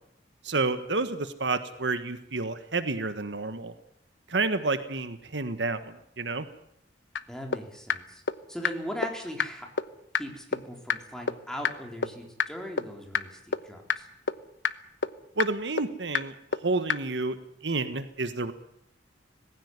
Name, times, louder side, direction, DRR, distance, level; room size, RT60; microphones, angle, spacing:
voice 1, 0.4-3.7 4.3-6.5 15.4-17.4 17.6-18.5, right 3 dB, 75° right, 11 dB, 1.5 m, -30 dB
sound 1, 7.2-7.3 7.5-7.6 7.9-8.0 8.3-8.4 8.6-8.7 9.0-9.1 9.4-9.5 9.8-9.9 10.1-10.2 10.5-10.6 10.9-11.0 11.3-11.4 11.6-11.7 12.0-12.1 12.4-12.5 12.8-12.9 13.1-13.2 13.5-13.6 13.9-14.0 14.3-14.4 14.6-14.7 15.0-15.1 15.4-15.5 15.8-15.9 16.1-16.2 16.5-16.6 16.9-17.0, left 6 dB, 85° left, 1.0 m, -25 dB
voice 2, 7.3-8.2 8.5-9.7 10.1-14.1, equal, 5° left, 2 dB, 4.2 m, -39 dB
19.5 x 16.0 x 9.7 m, 0.77 s
head